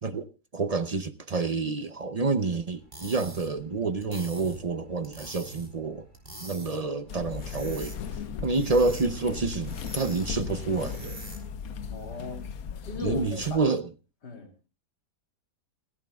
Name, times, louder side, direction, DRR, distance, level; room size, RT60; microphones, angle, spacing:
voice 1, 0.0-6.1 6.4-7.9 8.4-11.2 13.0-13.8, right 3 dB, 50° right, 0.4 m, -28 dB
sound 1, 2.7-11.6, right 1 dB, 25° right, 3.7 m, -45 dB
sound 2, 7.1-13.6, left 7 dB, 65° left, 1.3 m, -37 dB
voice 2, 11.9-12.4 12.8-13.8 14.2-14.5, left 3 dB, 80° left, 3.4 m, -37 dB
29.5 x 11.0 x 2.3 m
omnidirectional pair, 1.8 m